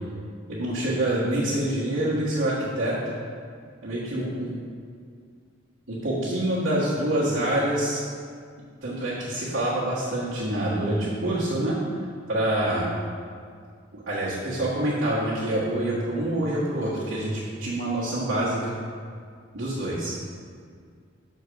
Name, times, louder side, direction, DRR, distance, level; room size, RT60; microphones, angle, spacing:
voice 1, 0.5-3.0 3.8-4.5 5.9-8.0 8.8-11.8 12.3-12.9 13.9-18.7 19.5-20.1, right 1 dB, 75° right, -10 dB, 1.6 m, -26 dB
6.2 x 4.5 x 6.2 m, 2.1 s
head